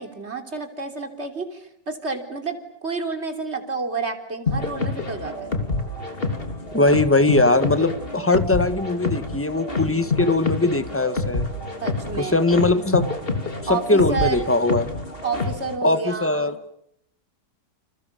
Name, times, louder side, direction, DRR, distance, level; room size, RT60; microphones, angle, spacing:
voice 1, 0.0-2.6 2.8-5.5 9.9-10.4 11.8-12.4 13.7-14.5 15.2-16.5, right 4 dB, 40° right, 6 dB, 3.6 m, -30 dB
sound 1, 4.5-15.7, left 3 dB, 30° left, 3.4 m, -27 dB
voice 2, 6.7-11.5 12.2-13.1 13.7-14.9 15.8-16.5, left 2 dB, 10° left, 11 dB, 1.3 m, -20 dB
30.0 x 28.0 x 6.8 m, 0.77 s
omnidirectional pair, 1.8 m